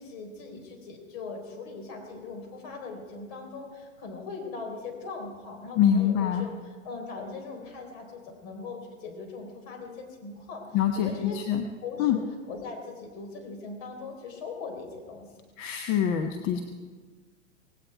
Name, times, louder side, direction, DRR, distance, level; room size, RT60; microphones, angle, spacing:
voice 1, 0.0-11.5 11.8-12.1 12.5-15.3, left 4 dB, 50° left, 3 dB, 3.8 m, -40 dB
voice 2, 5.8-6.5 10.7-11.6 12.0-12.2 15.6-16.6, left 9 dB, 35° left, 5 dB, 1.1 m, -25 dB
18.0 x 16.5 x 4.6 m, 1.4 s
figure-of-eight pair, 95°, 37 cm